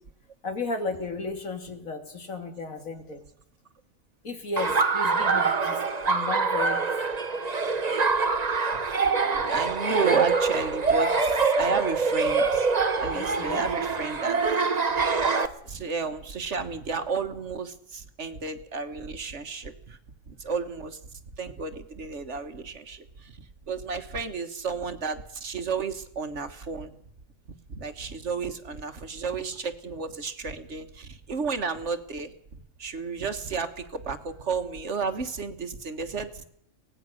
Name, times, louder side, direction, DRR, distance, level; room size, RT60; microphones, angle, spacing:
voice 1, 0.4-3.2 4.2-6.8 13.1-13.7, left 3 dB, 90° left, 6 dB, 2.8 m, -34 dB
Laughter, 4.6-15.5, right 4 dB, 35° right, 1.1 m, -25 dB
voice 2, 9.5-12.7 13.0-14.4 14.9-15.0 15.6-20.0 20.3-23.4 23.7-26.9 27.7-32.3 32.8-36.4, right 4 dB, 60° right, 8 dB, 1.7 m, -32 dB
23.5 x 18.0 x 6.5 m, 0.68 s
omnidirectional pair, 1.4 m